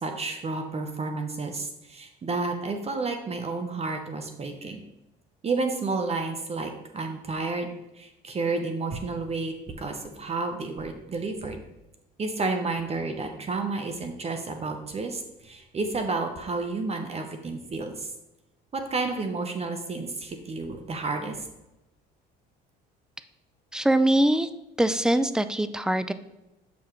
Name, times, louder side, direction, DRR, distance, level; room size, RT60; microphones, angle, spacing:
voice 1, 0.0-4.8 5.4-7.7 8.0-11.6 12.2-18.1 18.7-21.4, right 3 dB, 30° right, 5 dB, 0.8 m, -31 dB
voice 2, 23.7-24.5 24.8-26.1, right 1 dB, 5° right, 12 dB, 0.3 m, -22 dB
7.1 x 4.7 x 3.1 m, 0.94 s
supercardioid pair, 85°, 20 cm